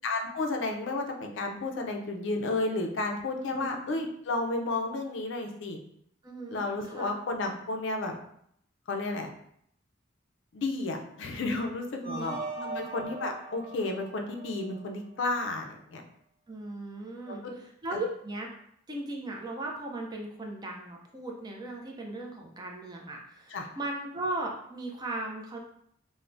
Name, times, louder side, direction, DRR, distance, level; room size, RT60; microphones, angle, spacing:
voice 1, 0.0-5.8 6.5-8.1 8.9-9.3 10.5-12.4 12.7-16.0 17.3-17.5 23.5-23.7, left 2 dB, 65° left, 3 dB, 0.4 m, -32 dB
voice 2, 3.5-3.8 6.2-7.1 12.0-12.9 16.5-18.5 18.9-25.6, right 2 dB, 20° right, 1 dB, 0.3 m, -37 dB
sound 1, 12.0-15.2, right 3 dB, 55° right, 0.7 m, -40 dB
3.3 x 2.0 x 2.5 m, 0.69 s
head